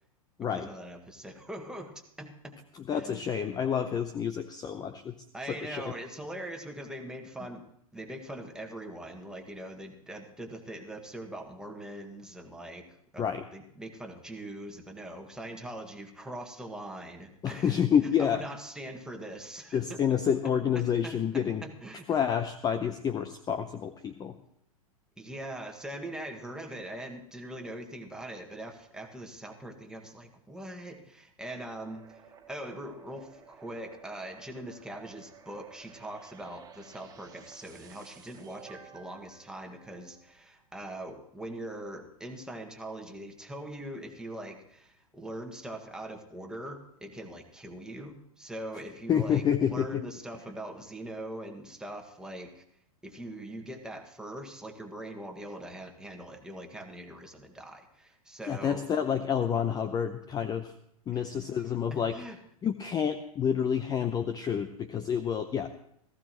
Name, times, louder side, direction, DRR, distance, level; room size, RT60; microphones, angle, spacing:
voice 1, 0.4-2.6 2.9-3.2 5.3-7.7 7.9-13.2 13.5-17.8 18.2-20.0 20.7-22.1 25.2-32.2 32.5-52.6 53.0-58.9 61.1-61.3 61.9-62.4, right 1 dB, 5° right, 3 dB, 1.7 m, -42 dB
voice 2, 2.9-5.1 5.5-5.8 13.2-13.4 17.4-18.5 19.7-21.6 22.1-24.3 49.1-50.0 58.5-60.7 61.1-62.2 62.6-65.7, left 8 dB, 20° left, 10 dB, 0.7 m, -28 dB
sound 1, 31.8-40.5, right 6 dB, 20° right, 1.6 m, -54 dB
18.0 x 15.0 x 3.0 m, 0.69 s
hypercardioid pair, 110°, 19 cm